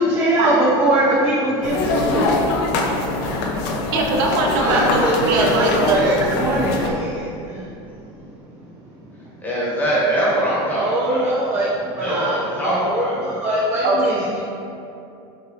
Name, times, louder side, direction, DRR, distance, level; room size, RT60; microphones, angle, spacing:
voice 1, 0.0-2.4 4.7-7.7 10.7-11.7 12.0-14.4, right 1 dB, 20° right, -5 dB, 0.4 m, -22 dB
sound 1, 1.6-6.9, left 3 dB, 60° left, 0.5 m, -23 dB
voice 2, 3.9-6.3 13.8-14.0, right 3 dB, 65° right, 0 dB, 0.6 m, -21 dB
voice 3, 4.5-4.8 9.4-11.3 12.0-13.1, right 1 dB, 15° left, -7 dB, 1.0 m, -22 dB
5.4 x 3.0 x 2.7 m, 2.7 s
supercardioid pair, 155°, 13 cm